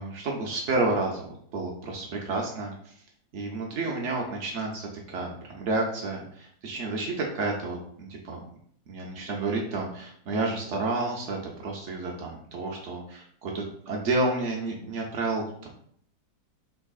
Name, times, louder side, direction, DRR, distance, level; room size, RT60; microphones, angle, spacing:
voice 1, 0.0-2.9 3.3-8.4 8.9-15.7, right 2 dB, 85° right, -1 dB, 0.6 m, -30 dB
3.9 x 3.5 x 2.3 m, 0.64 s
omnidirectional pair, 1.9 m